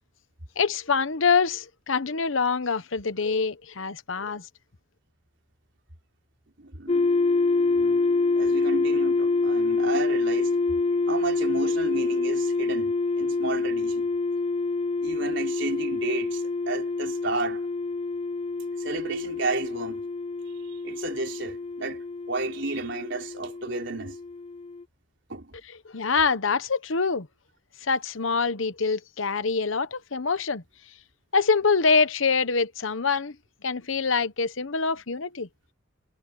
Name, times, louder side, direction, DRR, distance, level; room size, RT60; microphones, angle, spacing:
voice 1, 0.6-4.4 25.9-27.3 27.8-30.6 31.3-33.3 33.6-35.5, left 4 dB, 75° left, 1.0 m, -25 dB
voice 2, 6.6-7.2 7.6-10.5 11.1-14.1 15.0-17.7 18.8-20.1 20.8-24.2 25.3-25.5, right 3 dB, 60° right, 4.4 m, -32 dB
sound 1, 6.9-24.8, left 3 dB, 30° left, 0.6 m, -26 dB
head